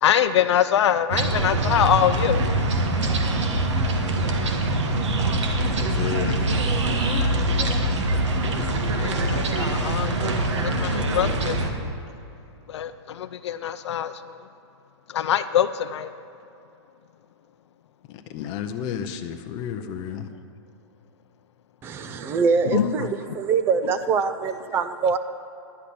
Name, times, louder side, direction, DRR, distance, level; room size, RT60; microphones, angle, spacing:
voice 1, 0.0-2.4 6.9-7.4 8.9-11.9 12.7-14.4 15.1-16.1 22.6-23.2 23.8-23.9, left 10 dB, 75° left, 10 dB, 0.5 m, -24 dB
sound 1, 1.1-11.7, right 1 dB, 85° right, 1.4 m, -23 dB
voice 2, 5.8-6.4 18.1-20.3, left 9 dB, 30° left, 6 dB, 0.7 m, -32 dB
voice 3, 21.8-25.2, right 5 dB, 15° right, 11 dB, 0.4 m, -24 dB
11.0 x 5.8 x 8.5 m, 2.7 s
hypercardioid pair, 155°, 15 cm